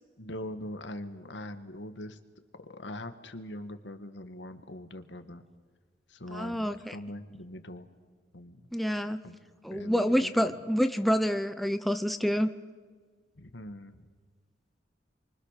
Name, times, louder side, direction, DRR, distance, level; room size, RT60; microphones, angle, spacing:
voice 1, 0.2-2.2 2.7-5.4 6.1-7.9 8.3-8.6 8.9-9.4 9.7-10.3 13.4-14.1, left 1 dB, 75° left, 9 dB, 1.7 m, -42 dB
voice 2, 6.3-7.0 8.7-9.2 9.6-12.5, equal, ahead, 8 dB, 0.7 m, -27 dB
29.5 x 24.5 x 6.6 m, 1.5 s
head